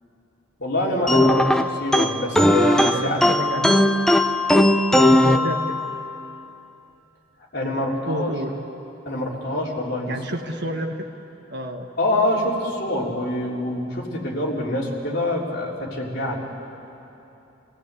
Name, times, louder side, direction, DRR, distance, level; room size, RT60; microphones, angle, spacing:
voice 1, 0.6-3.2 7.5-8.3 9.1-10.1 12.0-16.4, left 1 dB, 50° left, -4 dB, 3.8 m, -25 dB
sound 1, 1.1-6.1, left 1 dB, 5° left, 0.6 m, -18 dB
voice 2, 2.7-4.1 4.9-5.8 8.1-8.5 10.1-11.1 11.5-11.9, equal, 55° right, 2 dB, 1.5 m, -30 dB
28.5 x 17.5 x 8.4 m, 3.0 s
head